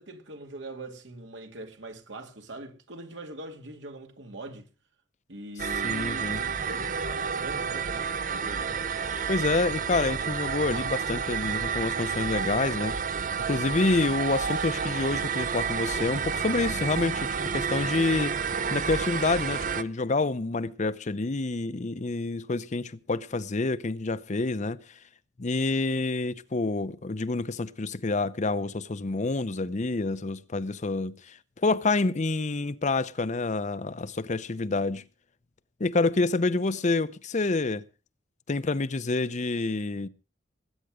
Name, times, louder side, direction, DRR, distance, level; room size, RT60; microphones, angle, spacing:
voice 1, 0.0-4.7 5.3-8.9, right 1 dB, 80° right, 2.5 m, -42 dB
sound 1, 5.6-19.8, right 6 dB, 45° right, 0.8 m, -30 dB
voice 2, 5.8-6.4 9.3-13.0 13.5-24.8 25.4-35.0 35.8-37.8 38.5-40.1, left 3 dB, 40° left, 0.7 m, -28 dB
20.0 x 9.1 x 4.9 m
head